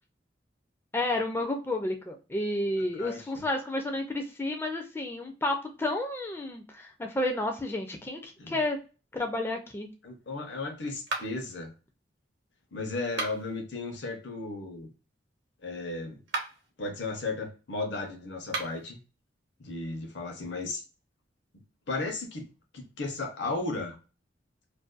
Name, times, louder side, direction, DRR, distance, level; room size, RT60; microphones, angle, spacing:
voice 1, 0.9-8.8 9.1-9.9, left 1 dB, 15° left, 3 dB, 0.4 m, -31 dB
voice 2, 10.0-11.7 12.7-14.9 15.6-16.2 16.8-19.0 19.6-20.8 21.9-22.5 22.7-24.0, left 3 dB, 70° left, 3 dB, 0.8 m, -35 dB
sound 1, 11.1-11.6 13.0-13.6 16.2-16.7 18.4-18.9, right 2 dB, 65° right, 0.8 m, -35 dB
2.5 x 2.2 x 2.3 m, 0.33 s
head